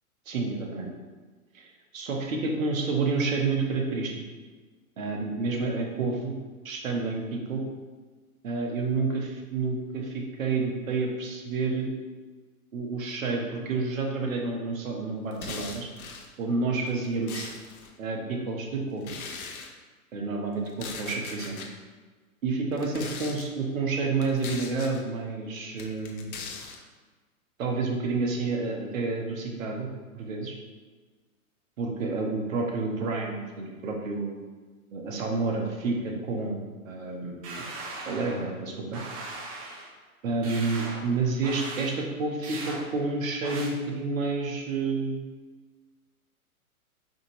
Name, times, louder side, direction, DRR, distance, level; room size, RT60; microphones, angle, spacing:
voice 1, 0.3-0.9 1.5-4.1 5.0-6.4 6.6-7.6 8.4-11.9 12.7-15.9 16.4-17.5 18.0-19.2 20.1-21.6 22.4-26.3 27.6-29.9 30.1-30.5 31.8-34.4 34.9-36.6 36.8-37.7 38.0-39.0 40.2-45.2, right 3 dB, 65° right, 1 dB, 1.0 m, -29 dB
sound 1, 15.3-16.3 16.9-17.9 19.0-19.7 20.7-21.7 22.7-23.5 24.2-25.0 25.8-26.8, left 5 dB, 70° left, 0.8 m, -40 dB
sound 2, 37.4-38.5 38.9-39.9 40.4-41.1 41.4-41.9 42.4-42.8 43.4-43.7, right 2 dB, 25° right, 0.4 m, -39 dB
5.0 x 2.6 x 2.9 m, 1.4 s
hypercardioid pair, 115°, 44 cm